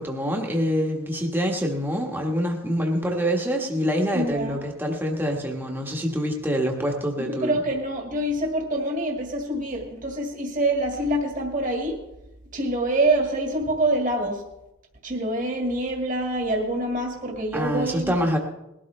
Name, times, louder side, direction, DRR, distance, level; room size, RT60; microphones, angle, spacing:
voice 1, 0.0-7.6 17.5-18.4, equal, 10° right, 1 dB, 1.3 m, -25 dB
voice 2, 4.1-4.7 7.2-12.0 12.5-14.4 15.0-18.2, right 1 dB, 40° right, 1 dB, 1.9 m, -26 dB
20.0 x 12.5 x 3.2 m, 0.91 s
head